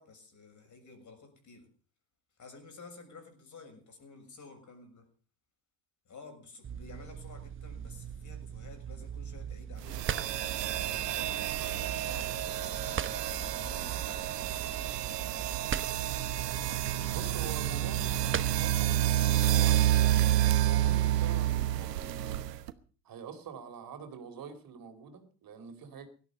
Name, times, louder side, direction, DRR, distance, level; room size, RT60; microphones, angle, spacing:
voice 1, 0.0-1.7 2.4-5.1 6.0-14.3 17.2-17.3, left 3 dB, 40° left, 6.7 m, -52 dB
sound 1, 6.6-18.9, right 8 dB, 25° right, 1.0 m, -40 dB
sound 2, 9.8-22.7, right 13 dB, 90° right, 1.1 m, -29 dB
voice 2, 17.1-22.5 23.0-26.1, right 6 dB, 45° right, 3.6 m, -45 dB
17.5 x 13.0 x 5.4 m
hypercardioid pair, 75°, 47 cm